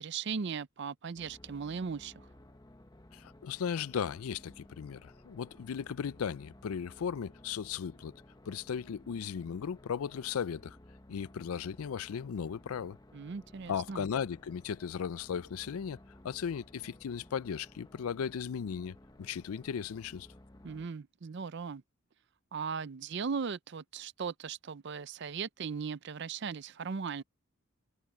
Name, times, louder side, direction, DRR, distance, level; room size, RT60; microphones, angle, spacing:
voice 1, 0.0-2.3 13.1-14.1 20.6-21.8 22.5-27.2, right 5 dB, 50° right, 0.5 m, -38 dB
sound 1, 1.2-20.9, left 1 dB, 20° left, 0.9 m, -56 dB
voice 2, 3.1-8.1 8.5-10.8 11.1-13.0 13.7-16.0 16.2-20.3, left 7 dB, 80° left, 0.4 m, -36 dB
head